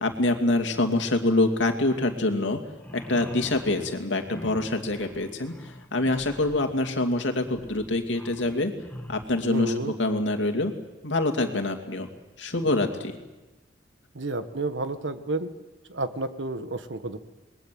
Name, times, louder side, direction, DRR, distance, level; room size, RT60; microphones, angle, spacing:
voice 1, 0.0-2.6 2.9-8.7 9.1-10.7 11.0-12.1 12.4-13.2, left 2 dB, 80° left, 5 dB, 2.6 m, -25 dB
sound 1, 2.7-9.5, equal, 10° left, 1.9 m, -44 dB
voice 2, 9.5-9.9 14.1-15.5 15.9-17.2, right 2 dB, 75° right, 10 dB, 1.6 m, -30 dB
28.0 x 21.5 x 7.8 m, 1.1 s
head